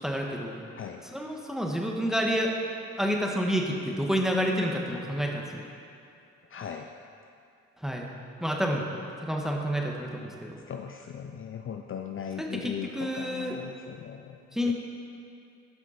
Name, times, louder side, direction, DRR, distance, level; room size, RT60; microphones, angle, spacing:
voice 1, 0.0-0.6 1.1-2.5 3.0-5.6 7.8-8.1 8.4-8.8 9.2-10.5 12.4-13.6 14.5-14.7, equal, ahead, 0 dB, 1.4 m, -29 dB
voice 2, 6.5-6.9 10.7-14.4 14.6-14.7, left 8 dB, 40° left, 4 dB, 0.5 m, -38 dB
12.0 x 6.0 x 4.3 m, 2.6 s
supercardioid pair, 65°, 31 cm